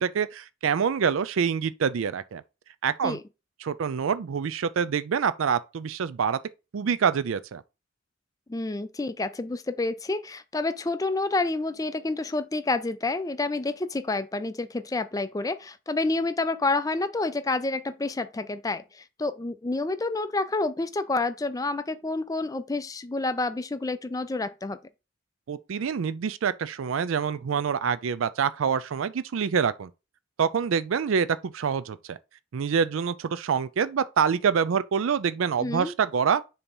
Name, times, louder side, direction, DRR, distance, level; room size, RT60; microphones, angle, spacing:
voice 1, 0.0-2.4 2.8-3.2 3.6-6.4 6.7-7.6 25.5-29.9 30.4-32.2 32.5-36.4, right 6 dB, 75° right, 0.4 m, -26 dB
voice 2, 8.5-24.8 35.6-35.9, left 3 dB, 15° left, 0.4 m, -29 dB
6.9 x 2.9 x 5.3 m
head